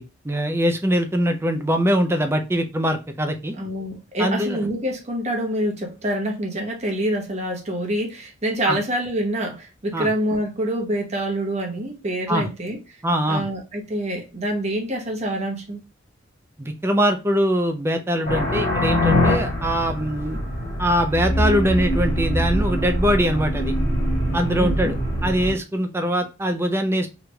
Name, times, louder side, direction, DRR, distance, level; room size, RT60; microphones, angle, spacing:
voice 1, 0.0-3.6 4.2-4.6 8.7-8.8 9.9-10.1 12.3-12.5 13.0-13.4 16.6-20.4 20.8-23.7 24.3-25.0 25.2-27.1, equal, 15° right, 0.4 m, -22 dB
voice 2, 3.5-12.8 13.3-15.8 24.6-24.9, right 1 dB, 35° right, 0.9 m, -26 dB
sound 1, 18.2-25.5, equal, 50° left, 1.6 m, -23 dB
3.1 x 2.4 x 3.0 m
head